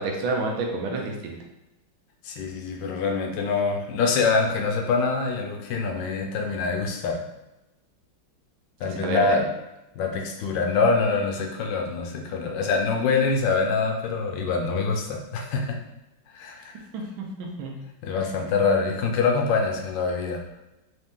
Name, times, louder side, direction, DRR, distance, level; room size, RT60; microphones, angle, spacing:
voice 1, 0.0-1.4 8.8-9.4 16.9-17.7, right 3 dB, 85° right, 1 dB, 1.5 m, -29 dB
voice 2, 2.2-7.2 8.8-9.5 10.0-15.8 16.3-16.7 18.0-20.4, left 4 dB, 75° left, 2 dB, 1.2 m, -25 dB
3.8 x 2.8 x 3.5 m, 0.96 s
omnidirectional pair, 2.1 m